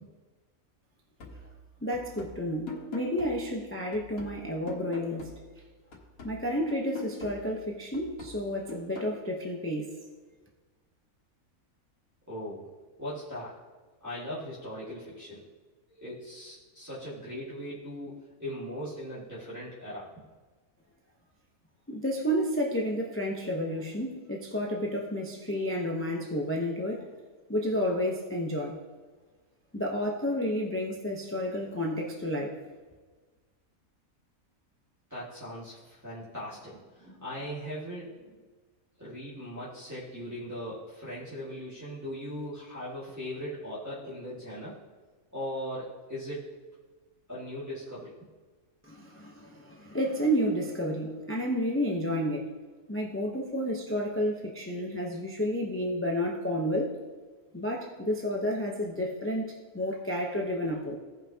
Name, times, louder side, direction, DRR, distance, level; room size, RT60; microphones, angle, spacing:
sound 1, 1.2-5.6 5.9-9.2, left 2 dB, 80° left, 1.9 m, -44 dB
voice 1, 1.8-5.3 6.2-10.0 21.9-27.1 27.5-28.8 29.7-32.5 48.8-52.5 52.9-56.9 57.5-61.0, equal, 10° left, 0 dB, 0.6 m, -31 dB
voice 2, 12.3-12.6 13.0-13.6 14.0-15.4 16.0-20.1 35.1-38.3 39.0-44.7 45.3-46.6 47.3-48.1, equal, 10° right, -10 dB, 1.9 m, -39 dB
17.0 x 5.7 x 2.8 m, 1.4 s
omnidirectional pair, 1.5 m